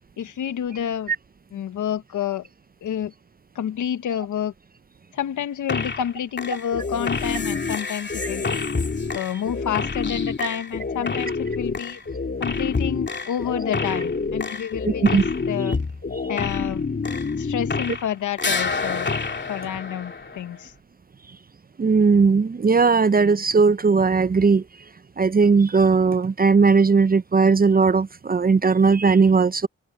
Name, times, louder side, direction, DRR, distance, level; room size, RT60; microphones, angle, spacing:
voice 1, 0.2-1.1 1.5-2.5 2.8-3.1 3.5-4.5 5.1-8.7 9.1-12.0 12.4-15.2 15.5-15.8 16.3-16.8 17.4-19.1 19.5-20.7, left 9 dB, 80° left, 1.2 m, -29 dB
sound 1, 5.7-6.1 6.4-18.1 18.4-20.6, left 4 dB, 35° left, 2.8 m, -27 dB
voice 2, 14.9-15.2 21.8-24.6 25.2-29.7, right 4 dB, 30° right, 0.6 m, -18 dB
cardioid pair, 55°, 30 cm